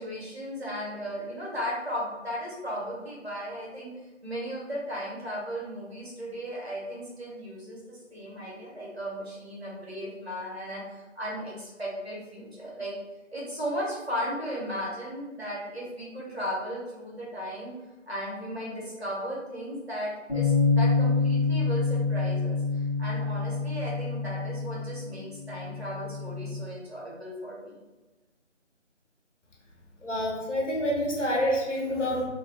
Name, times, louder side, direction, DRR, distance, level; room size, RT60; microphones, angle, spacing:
voice 1, 0.0-3.9 4.2-13.0 13.3-17.7 18.1-27.8, equal, 55° right, -5 dB, 1.4 m, -36 dB
Bass guitar, 20.3-26.5, left 4 dB, 25° left, 1.4 m, -27 dB
voice 2, 30.0-32.2, equal, 70° left, -1 dB, 1.2 m, -27 dB
3.6 x 3.0 x 2.3 m, 1.2 s
figure-of-eight pair, 175°, 37 cm